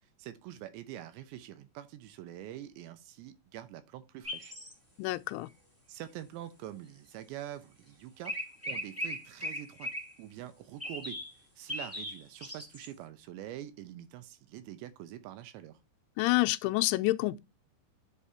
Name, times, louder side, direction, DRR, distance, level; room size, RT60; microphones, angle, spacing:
voice 1, 0.2-4.5 5.9-8.4 8.6-9.9 10.2-11.2 11.6-15.8, right 12 dB, 75° right, 2.9 m, -45 dB
sound 1, 4.2-4.7 7.4-7.5 8.2-10.1 10.8-11.3 11.7-12.9, equal, 5° right, 1.0 m, -38 dB
voice 2, 5.0-5.5 16.2-17.4, left 20 dB, 85° left, 2.9 m, -28 dB
10.5 x 4.9 x 2.8 m
omnidirectional pair, 5.5 m